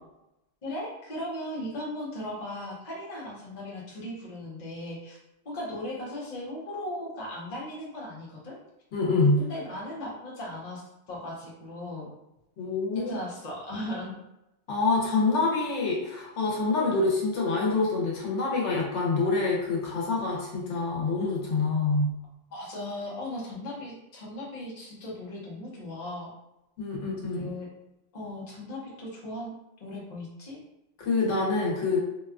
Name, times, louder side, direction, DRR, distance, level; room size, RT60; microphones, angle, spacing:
voice 1, 0.6-5.2 5.4-8.5 9.4-10.8 11.1-12.1 12.9-14.2 22.5-26.3 27.3-27.7 28.1-29.5 29.8-30.6, left 1 dB, 40° left, -5 dB, 0.8 m, -37 dB
voice 2, 8.9-9.5 12.6-13.1 14.7-22.1 26.8-27.5 31.0-32.0, left 3 dB, 90° left, -3 dB, 1.1 m, -26 dB
2.7 x 2.2 x 2.4 m, 0.90 s
omnidirectional pair, 1.2 m